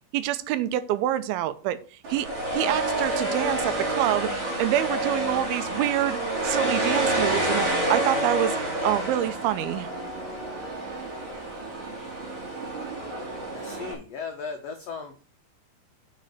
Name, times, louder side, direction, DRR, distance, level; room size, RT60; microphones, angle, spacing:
voice 1, 0.1-1.8 2.1-4.3 4.6-6.2 6.4-9.9, right 13 dB, 90° right, 2.6 m, -26 dB
sound 1, 2.0-13.9, right 1 dB, 50° right, 4.9 m, -28 dB
voice 2, 13.5-15.2, left 5 dB, 90° left, 1.4 m, -36 dB
8.4 x 5.2 x 6.5 m
omnidirectional pair, 4.3 m